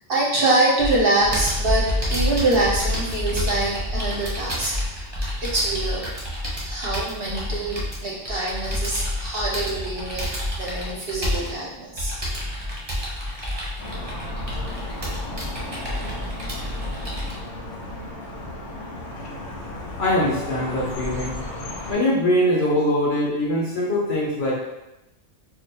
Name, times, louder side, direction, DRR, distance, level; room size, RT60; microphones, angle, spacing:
voice 1, 0.1-4.7 5.5-6.1 6.6-10.2 10.6-12.1, right 2 dB, 55° right, -4 dB, 0.8 m, -24 dB
Computer keyboard, 0.8-17.3, left 1 dB, 25° right, 0.7 m, -29 dB
sound 1, 13.8-21.9, left 1 dB, 80° left, 1.1 m, -34 dB
voice 2, 20.0-21.4 21.9-24.5, left 1 dB, 55° left, -5 dB, 1.3 m, -22 dB
3.0 x 2.4 x 4.3 m, 0.96 s
omnidirectional pair, 1.3 m